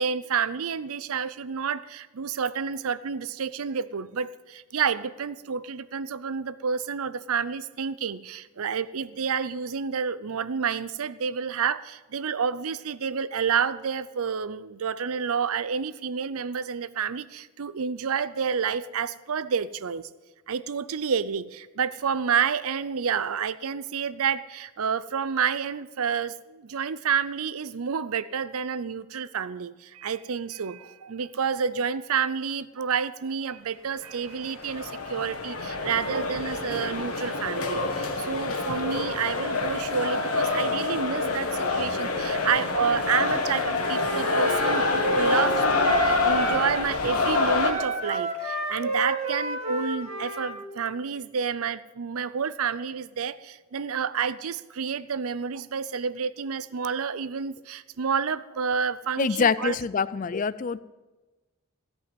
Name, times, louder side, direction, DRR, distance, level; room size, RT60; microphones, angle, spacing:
voice 1, 0.0-20.1 20.5-59.8, right 6 dB, 75° right, 16 dB, 0.6 m, -29 dB
sound 1, 34.1-47.7, left 3 dB, 85° left, 1.8 m, -27 dB
Wind instrument woodwind instrument, 43.8-46.9 47.2-50.6, right 2 dB, 30° right, 2.3 m, -30 dB
voice 2, 59.2-60.8, left 5 dB, 35° left, 18 dB, 0.3 m, -25 dB
16.5 x 5.5 x 9.1 m, 1.2 s
head